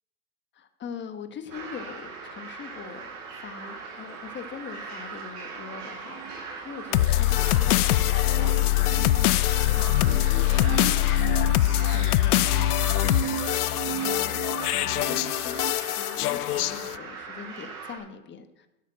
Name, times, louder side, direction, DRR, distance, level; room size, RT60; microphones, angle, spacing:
voice 1, 0.5-9.4 9.7-18.7, left 6 dB, 25° left, 8 dB, 1.3 m, -42 dB
sound 1, 1.5-18.0, right 5 dB, 55° right, 5.5 m, -40 dB
sound 2, 6.1-15.7, right 11 dB, 25° right, 0.5 m, -38 dB
sound 3, 6.9-17.0, left 16 dB, 90° left, 0.5 m, -23 dB
11.5 x 7.2 x 7.4 m, 0.94 s
hypercardioid pair, 115°, 44 cm